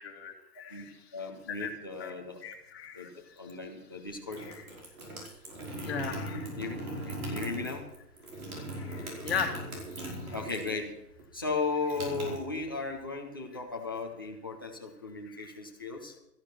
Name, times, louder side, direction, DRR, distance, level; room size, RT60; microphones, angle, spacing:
voice 1, 0.0-1.1 1.5-1.7 2.0-2.1 2.4-3.1 4.3-4.6 5.8-6.5 8.8-10.3 15.3-15.5, left 6 dB, 40° left, 3 dB, 2.1 m, -38 dB
voice 2, 1.1-2.4 2.9-4.4 6.6-7.9 10.0-10.9 11.3-16.1, left 4 dB, 15° left, 0 dB, 0.7 m, -36 dB
sound 1, 4.1-10.8 11.1-13.0, right 1 dB, 60° right, 5.2 m, -39 dB
14.0 x 11.5 x 6.0 m, 0.83 s
hypercardioid pair, 175°, 49 cm